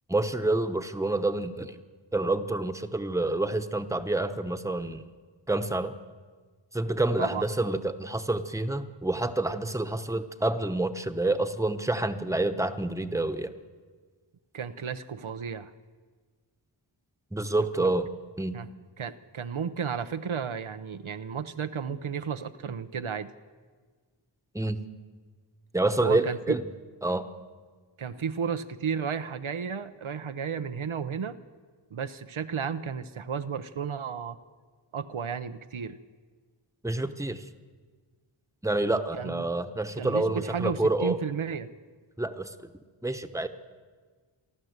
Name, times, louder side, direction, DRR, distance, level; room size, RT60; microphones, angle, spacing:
voice 1, 0.1-1.7 2.1-5.0 5.5-5.9 6.7-13.5 17.3-18.1 18.4-18.6 24.5-24.8 25.7-26.6 27.0-27.3 36.8-37.4 38.6-41.2 42.2-42.5 43.0-43.5, right 2 dB, 5° right, 8 dB, 1.0 m, -28 dB
voice 2, 14.5-15.7 17.6-17.9 18.5-18.7 19.0-23.3 26.0-26.6 28.0-31.4 31.9-34.4 34.9-36.0 39.1-39.5 40.0-41.7, right 6 dB, 85° right, 10 dB, 0.8 m, -33 dB
27.5 x 12.0 x 8.0 m, 1.5 s
wide cardioid pair, 60°, 47 cm